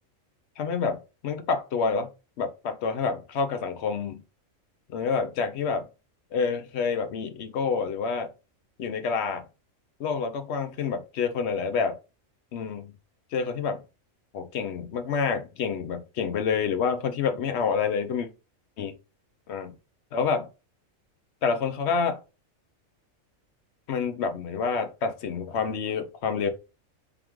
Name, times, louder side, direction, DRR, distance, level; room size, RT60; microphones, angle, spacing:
voice 1, 0.6-2.1 2.4-4.2 4.9-5.9 6.3-8.3 8.8-9.4 10.0-12.0 12.5-12.9 13.3-13.8 14.3-18.3 18.8-18.9 19.5-19.7 20.1-20.5 21.4-22.2 23.9-26.5, left 5 dB, 60° left, 0.8 m, -28 dB
3.5 x 3.5 x 3.0 m
omnidirectional pair, 1.4 m